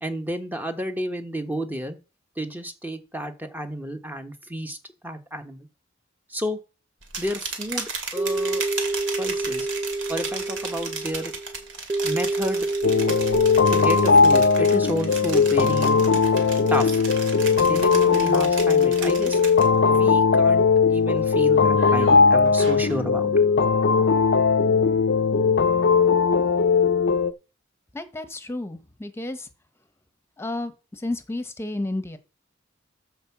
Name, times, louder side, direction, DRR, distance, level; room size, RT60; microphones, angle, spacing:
voice 1, 0.0-2.0 2.4-4.8 5.0-5.7 6.3-6.6 7.2-8.6 9.2-9.7 10.1-11.3 12.0-12.7 13.7-16.3 16.7-17.0 17.3-19.4 19.8-23.4, equal, 10° right, 7 dB, 1.1 m, -31 dB
sound 1, 7.0-20.0 20.3-20.7 21.2-23.0, right 4 dB, 70° right, 2.3 m, -35 dB
sound 2, 8.2-15.4, right 2 dB, 25° right, 0.4 m, -29 dB
sound 3, 12.8-27.3, left 5 dB, 60° left, 0.6 m, -19 dB
voice 2, 27.9-29.5 30.4-32.2, left 2 dB, 15° left, 10 dB, 1.1 m, -31 dB
10.5 x 4.6 x 7.2 m, 0.33 s
head